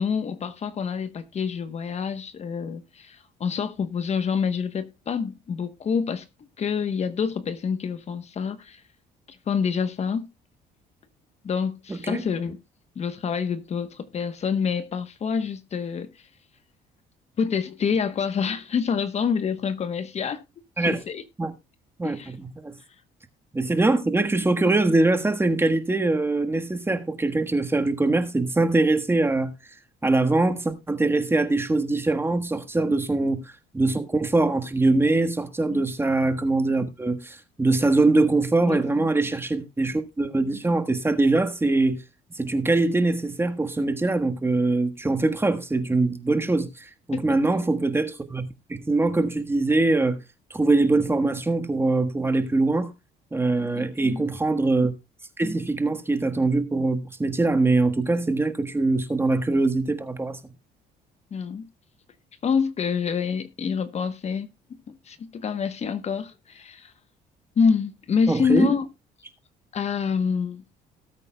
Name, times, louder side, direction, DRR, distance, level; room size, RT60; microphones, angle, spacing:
voice 1, 0.0-6.3 6.6-8.8 9.3-10.3 11.4-12.6 13.0-16.3 17.4-20.4 20.8-21.2 22.0-22.3 32.9-33.0 35.7-35.9 38.7-39.1 47.1-47.3 53.6-54.2 61.3-61.7 62.4-64.5 64.9-66.9 67.6-68.9 69.7-70.6, left 6 dB, 40° left, 1.0 m, -27 dB
voice 2, 11.9-12.2 20.8-21.0 21.4-21.5 22.0-22.7 23.5-29.5 30.0-33.4 33.7-42.0 42.3-48.4 48.7-50.2 50.5-52.9 53.3-54.9 55.4-60.4 68.3-68.7, right 2 dB, 15° right, 1.4 m, -23 dB
18.5 x 8.4 x 2.2 m
cardioid pair, 110°, 17 cm